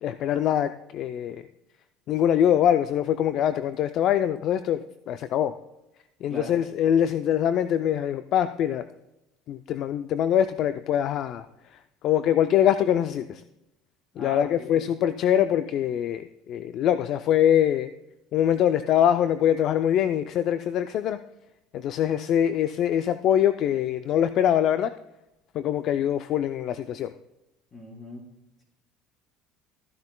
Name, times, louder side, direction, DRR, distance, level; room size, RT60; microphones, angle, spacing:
voice 1, 0.0-1.5 2.1-5.5 6.2-8.9 9.5-11.5 11.7-13.4 14.2-17.9 18.3-21.2 21.7-24.9 25.5-27.1, left 10 dB, 55° left, 11 dB, 0.4 m, -23 dB
voice 2, 14.1-14.9 27.7-28.2, right 1 dB, 30° left, -2 dB, 4.3 m, -39 dB
14.0 x 10.5 x 2.2 m, 0.91 s
supercardioid pair, 120°, 0 cm